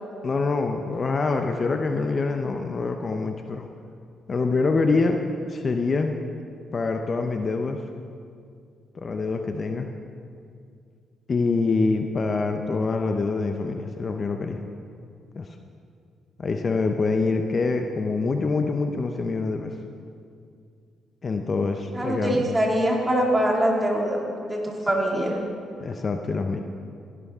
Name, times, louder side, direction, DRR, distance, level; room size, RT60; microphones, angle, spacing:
voice 1, 0.2-3.7 4.3-5.2 5.5-6.2 6.7-7.8 8.9-9.9 11.3-14.6 15.3-15.5 16.4-19.7 21.2-22.4 25.8-26.6, left 3 dB, 40° left, 5 dB, 0.7 m, -25 dB
voice 2, 21.9-24.2 24.5-25.4, right 1 dB, 15° right, -1 dB, 2.4 m, -23 dB
16.0 x 11.0 x 3.7 m, 2.3 s
cardioid pair, 90°, 0 cm